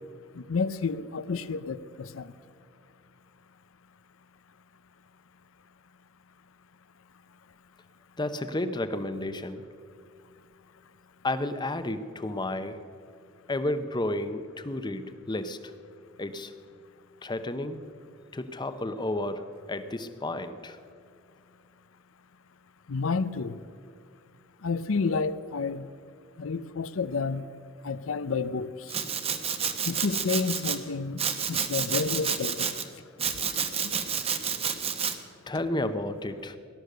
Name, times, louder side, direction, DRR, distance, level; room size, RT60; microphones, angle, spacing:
voice 1, 0.4-2.3 22.9-23.6 24.6-25.9 26.4-27.5 27.8-28.7 29.9-31.2 31.5-32.7, left 4 dB, 80° left, 15 dB, 0.6 m, -30 dB
voice 2, 8.2-9.6 11.2-12.8 13.5-15.6 16.2-16.5 17.2-17.9 18.3-20.8 35.5-36.6, left 1 dB, 20° left, 11 dB, 0.7 m, -32 dB
Domestic sounds home sounds, 28.9-30.8 31.2-32.8 33.2-35.1, right 7 dB, 30° right, 1.0 m, -30 dB
18.0 x 12.0 x 6.7 m, 2.2 s
head